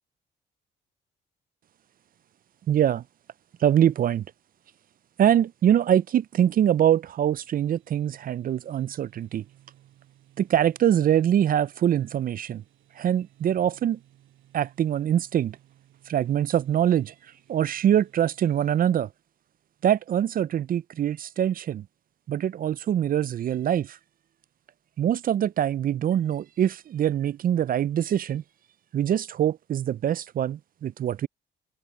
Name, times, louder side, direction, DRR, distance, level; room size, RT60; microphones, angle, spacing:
voice 1, 2.7-3.0 3.6-4.2 5.2-9.4 10.4-12.6 13.0-14.0 14.5-15.6 16.1-17.1 17.5-19.1 19.8-21.8 22.3-24.0 25.0-28.4 28.9-31.3, right 10 dB, 45° right, 0.4 m, -24 dB
sound 1, 7.4-18.9, right 13 dB, 80° right, 7.0 m, -60 dB
open air
cardioid pair, 90°, 20 cm